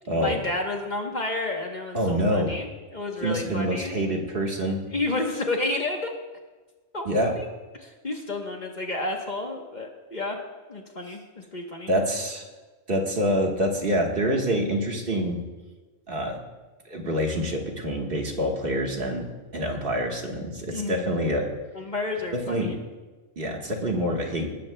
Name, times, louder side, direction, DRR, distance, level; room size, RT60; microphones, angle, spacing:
voice 1, 0.0-4.0 4.9-6.1 6.9-7.5 7.8-10.4 10.7-11.9 20.7-21.1 21.7-22.8, left 2 dB, 40° left, 1 dB, 1.1 m, -31 dB
voice 2, 1.9-2.5 3.2-4.8 7.0-7.3 11.9-12.5 12.9-15.4 16.1-16.4 16.8-19.3 19.5-21.5 22.5-22.7 23.4-24.5, equal, 50° right, 1 dB, 1.6 m, -26 dB
18.5 x 13.0 x 2.2 m, 1.3 s
omnidirectional pair, 1.3 m